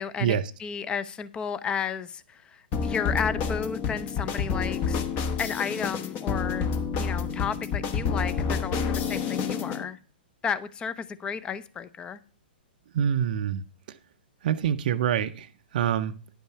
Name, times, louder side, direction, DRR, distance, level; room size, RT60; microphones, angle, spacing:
voice 1, 0.0-5.1 5.4-6.7 7.0-10.0 10.4-12.2, left 6 dB, 15° left, 0.6 m, -33 dB
sound 1, 2.7-9.8, left 6 dB, 30° left, 1.1 m, -29 dB
voice 2, 12.9-13.6 14.4-15.5 15.7-16.1, right 9 dB, 55° right, 0.5 m, -25 dB
10.0 x 5.5 x 5.6 m
hypercardioid pair, 125°, 5 cm